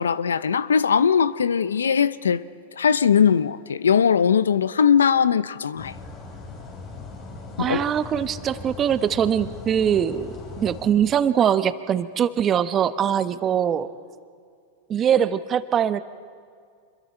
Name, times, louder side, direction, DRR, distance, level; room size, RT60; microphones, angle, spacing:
voice 1, 0.0-2.4 2.8-5.9 7.6-7.8, left 7 dB, 90° left, 0.6 m, -20 dB
sound 1, 5.8-10.9, left 3 dB, 45° left, 6.6 m, -39 dB
voice 2, 7.6-13.9 14.9-16.0, right 9 dB, 30° right, 1.0 m, -22 dB
26.0 x 22.0 x 4.5 m
hypercardioid pair, 105°, 0 cm